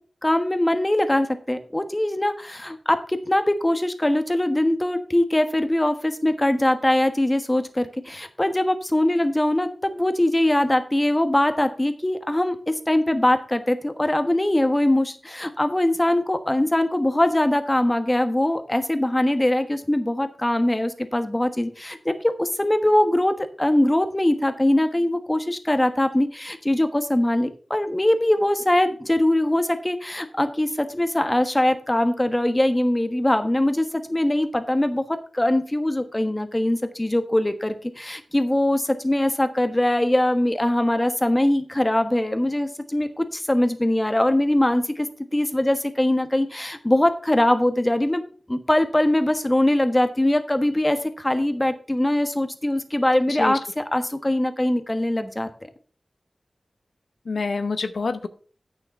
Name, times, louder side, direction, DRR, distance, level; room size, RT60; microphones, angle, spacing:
voice 1, 0.2-35.0 35.3-48.2 48.5-55.5, left 1 dB, 20° left, 9 dB, 1.3 m, -22 dB
voice 2, 53.3-53.6 57.3-58.3, left 4 dB, 90° left, 10 dB, 0.7 m, -27 dB
9.0 x 6.7 x 5.5 m, 0.42 s
wide cardioid pair, 65°, 0 cm